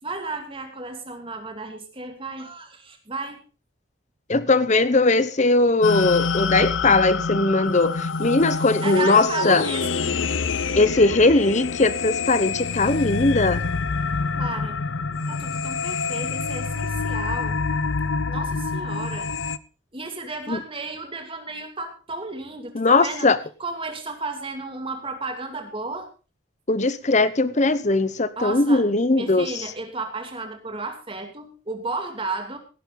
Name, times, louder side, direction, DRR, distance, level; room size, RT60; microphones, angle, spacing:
voice 1, 0.0-3.4 8.8-10.0 14.4-14.8 15.3-17.6 18.3-19.3 19.9-23.3 23.6-26.1 28.4-28.8 29.1-32.6, right 3 dB, 25° right, 5 dB, 2.5 m, -33 dB
voice 2, 4.3-9.6 10.7-13.6 20.5-20.6 22.7-23.4 26.7-29.6, left 3 dB, 35° left, 14 dB, 1.0 m, -19 dB
sound 1, 5.8-19.6, left 4 dB, 75° left, 0.7 m, -26 dB
17.5 x 11.5 x 4.0 m, 0.33 s
head